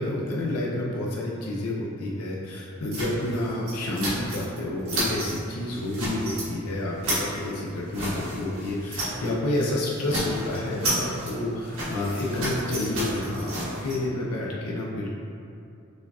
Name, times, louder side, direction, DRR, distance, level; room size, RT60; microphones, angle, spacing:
voice 1, 0.0-15.1, left 1 dB, 90° left, -3 dB, 0.5 m, -29 dB
sound 1, 2.9-4.6 4.8-5.4 5.7-6.5 6.8-9.3 9.5-9.7 10.0-13.9, right 1 dB, 80° right, 1.4 m, -31 dB
6.2 x 2.3 x 2.3 m, 2.6 s
head